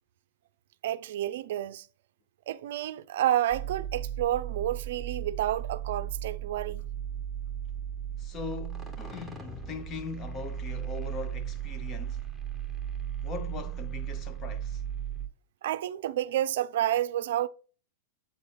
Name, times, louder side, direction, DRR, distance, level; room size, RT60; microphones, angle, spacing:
voice 1, 0.8-1.9 2.5-6.9 15.6-17.5, right 12 dB, 70° right, 0.4 m, -30 dB
sound 1, 3.5-15.3, right 9 dB, 5° left, 1.3 m, -36 dB
voice 2, 8.2-12.3 13.2-14.8, left 5 dB, 30° left, 1.0 m, -40 dB
8.3 x 4.1 x 3.4 m
hypercardioid pair, 125°, 0 cm